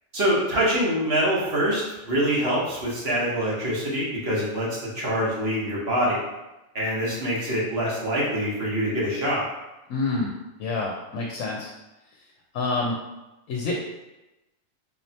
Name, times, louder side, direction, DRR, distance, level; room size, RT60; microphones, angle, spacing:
voice 1, 0.1-6.2 6.7-9.4, equal, 50° right, -5 dB, 1.2 m, -25 dB
voice 2, 9.9-10.3 10.6-11.7 12.5-12.9 13.5-13.8, left 3 dB, 75° left, -1 dB, 0.9 m, -27 dB
4.2 x 3.2 x 2.8 m, 1.0 s
omnidirectional pair, 1.4 m